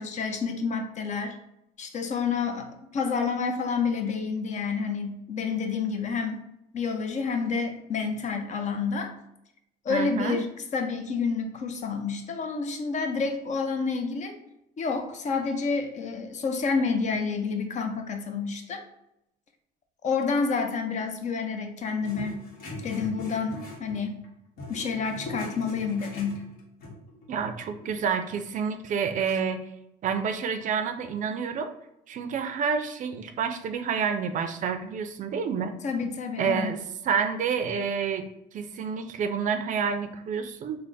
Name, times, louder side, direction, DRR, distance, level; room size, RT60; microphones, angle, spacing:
voice 1, 0.0-1.4 1.8-6.4 6.7-9.1 9.8-14.4 14.8-18.8 20.0-22.4 22.8-24.2 24.7-26.4 35.8-36.7, left 5 dB, 45° left, 6 dB, 0.6 m, -29 dB
voice 2, 9.9-10.4 27.3-29.6 30.0-31.7 32.1-35.7 36.4-36.8 37.0-40.8, right 6 dB, 50° right, 8 dB, 0.4 m, -29 dB
sound 1, 22.0-24.3 24.6-28.1, left 2 dB, 65° left, 1.1 m, -41 dB
3.3 x 2.0 x 3.9 m, 0.82 s
cardioid pair, 110°, 17 cm